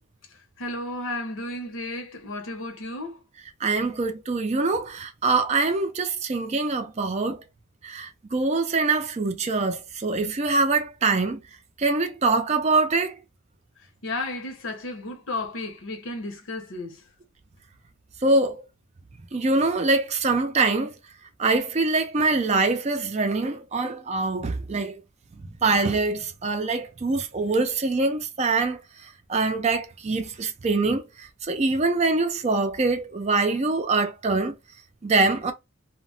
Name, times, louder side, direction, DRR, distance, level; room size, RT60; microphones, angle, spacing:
voice 1, 0.6-3.2 14.0-17.0, left 2 dB, 75° left, 0.8 m, -33 dB
voice 2, 3.6-7.4 7.8-11.4 11.8-13.1 18.2-18.6 19.3-20.9 21.4-25.0 25.6-28.8 29.3-34.5 35.0-35.5, right 3 dB, 30° right, 0.4 m, -24 dB
2.1 x 2.0 x 3.7 m
head